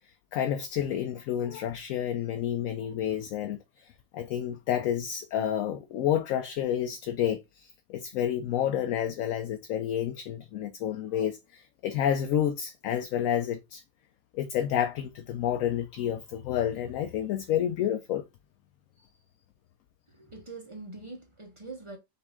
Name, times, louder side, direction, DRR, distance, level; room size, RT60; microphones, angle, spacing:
voice 1, 0.3-3.6 4.1-13.8 14.3-18.2, left 10 dB, 70° left, 0.9 m, -29 dB
voice 2, 20.2-22.0, right 3 dB, 25° right, 0.8 m, -43 dB
5.6 x 2.6 x 3.5 m
omnidirectional pair, 1.6 m